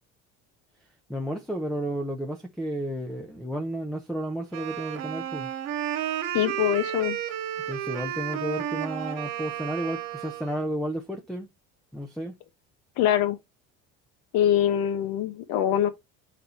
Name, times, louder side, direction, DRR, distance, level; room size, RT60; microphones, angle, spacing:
voice 1, 1.1-5.5 7.7-11.5 11.9-12.3, right 1 dB, ahead, 0.6 m, -32 dB
Wind instrument woodwind instrument, 4.5-10.7, right 11 dB, 60° right, 1.5 m, -32 dB
voice 2, 6.3-7.2 13.0-13.4 14.3-15.9, left 11 dB, 70° left, 1.2 m, -23 dB
8.0 x 4.1 x 4.3 m
cardioid pair, 160°, 30 cm